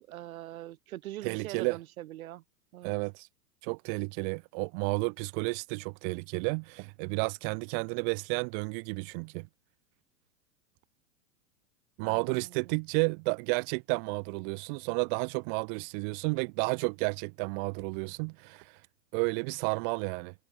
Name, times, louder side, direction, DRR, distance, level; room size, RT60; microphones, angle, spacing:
voice 1, 0.1-2.4 2.7-2.9 12.0-12.7, right 15 dB, 60° right, 1.7 m, -43 dB
voice 2, 1.2-1.8 2.8-3.3 3.6-9.5 12.0-18.7 19.1-20.3, right 37 dB, 35° right, 0.6 m, -32 dB
hypercardioid pair, 105°, 47 cm